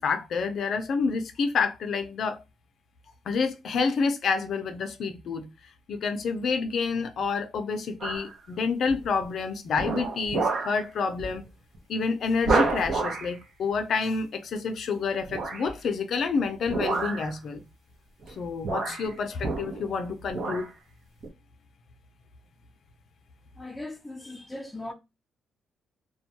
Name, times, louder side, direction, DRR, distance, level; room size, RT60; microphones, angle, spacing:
voice 1, 0.0-2.4 3.3-5.5 5.9-11.5 11.9-17.6 18.3-20.7, left 5 dB, 60° left, 0.4 m, -28 dB
sound 1, 8.0-8.4 8.9-9.2 9.8-10.8 11.2-11.4 11.7-11.8 12.4-13.3 15.3-15.7 16.7-17.3 18.2-18.3 18.6-20.0 20.3-20.7 21.2-21.3, right 3 dB, 50° right, 0.7 m, -29 dB
voice 2, 23.5-24.9, left 2 dB, 5° left, 0.5 m, -38 dB
2.2 x 2.1 x 2.7 m
cardioid pair, 115°, 0 cm